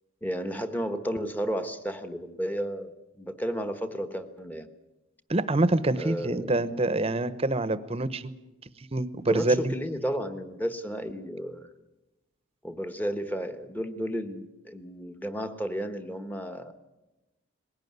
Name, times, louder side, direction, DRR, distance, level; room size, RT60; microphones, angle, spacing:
voice 1, 0.2-4.7 6.0-6.7 9.2-11.7 12.6-16.7, equal, 10° left, 9 dB, 1.2 m, -33 dB
voice 2, 5.3-8.3 8.9-9.7, right 2 dB, 30° right, 14 dB, 0.9 m, -26 dB
20.5 x 17.5 x 9.5 m, 1.0 s
head